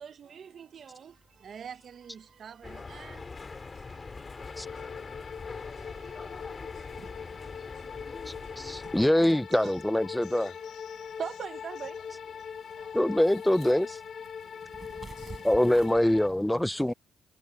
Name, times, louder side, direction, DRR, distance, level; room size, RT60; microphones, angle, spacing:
voice 1, 0.0-8.9 9.6-9.7 11.2-12.0 12.6-13.1 16.8-16.9, right 7 dB, 55° right, 1.1 m, -46 dB
sound 1, 1.1-16.3, right 4 dB, 30° right, 6.0 m, -55 dB
sound 2, 2.6-9.1, left 4 dB, 30° left, 2.4 m, -43 dB
sound 3, 4.4-16.3, left 7 dB, 50° left, 0.8 m, -42 dB
voice 2, 8.3-10.5 12.9-14.0 15.4-16.9, left 1 dB, 5° left, 0.3 m, -24 dB
voice 3, 10.0-11.2 11.9-12.0 12.4-13.9 14.3-15.5 16.5-16.9, left 12 dB, 80° left, 0.9 m, -55 dB
cardioid pair, 90°, 0 cm